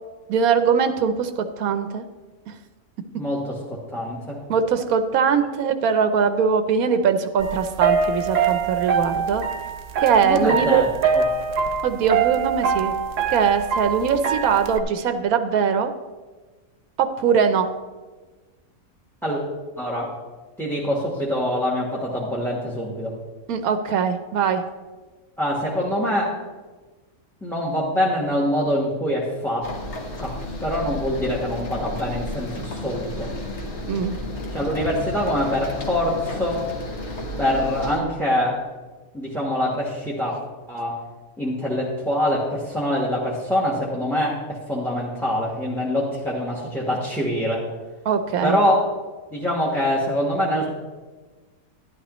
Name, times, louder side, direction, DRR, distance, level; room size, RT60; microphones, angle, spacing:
voice 1, 0.3-2.0 4.5-9.4 10.0-10.8 11.8-12.9 13.3-15.9 17.0-17.7 23.5-24.6 33.9-34.2 48.1-48.6, right 6 dB, 85° right, 8 dB, 1.1 m, -21 dB
voice 2, 3.1-4.4 10.2-10.9 11.1-11.2 19.2-19.4 19.8-20.1 20.6-23.1 25.4-26.3 27.4-29.7 30.2-33.3 34.5-36.6 37.4-38.6 39.1-40.3 40.7-41.0 41.4-47.6 48.4-48.9 49.3-50.7, left 1 dB, ahead, -3 dB, 1.1 m, -24 dB
sound 1, 7.4-14.8, right 6 dB, 65° right, 1.0 m, -24 dB
sound 2, 29.6-38.0, left 1 dB, 55° left, 1.5 m, -32 dB
11.0 x 11.0 x 3.0 m, 1.3 s
omnidirectional pair, 1.5 m